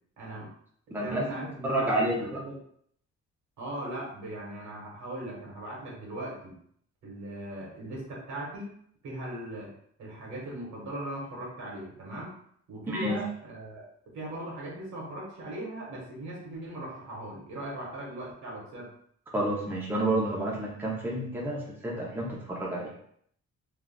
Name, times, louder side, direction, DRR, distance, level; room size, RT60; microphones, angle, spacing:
voice 1, 0.2-0.5 0.9-2.6 3.6-6.5 7.0-8.8 9.0-9.7 10.0-12.3 12.7-13.8 14.1-18.9, right 1 dB, 75° right, -3 dB, 1.3 m, -39 dB
voice 2, 0.9-2.4 12.9-13.2 19.3-22.9, right 1 dB, 5° right, -3 dB, 0.5 m, -30 dB
3.5 x 2.4 x 2.2 m, 0.65 s
cardioid pair, 135°, 29 cm